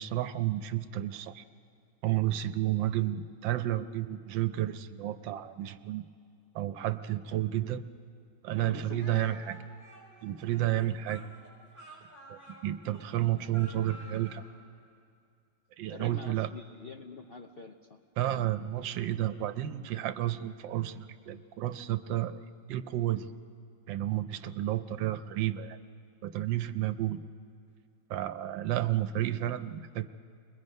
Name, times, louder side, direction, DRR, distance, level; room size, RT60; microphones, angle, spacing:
voice 1, 0.0-1.4 2.0-6.0 6.5-7.9 8.4-9.6 10.2-11.3 12.3-14.4 15.8-16.5 18.2-22.4 22.7-23.3 23.9-25.8 26.2-27.2 28.1-30.1, right 13 dB, 85° right, 11 dB, 1.4 m, -31 dB
voice 2, 8.6-9.5 15.9-18.0, left 4 dB, 70° left, 3 dB, 0.5 m, -46 dB
Speech, 9.0-14.5, equal, 5° right, 6.7 m, -51 dB
30.0 x 21.5 x 5.4 m, 2.4 s
omnidirectional pair, 2.0 m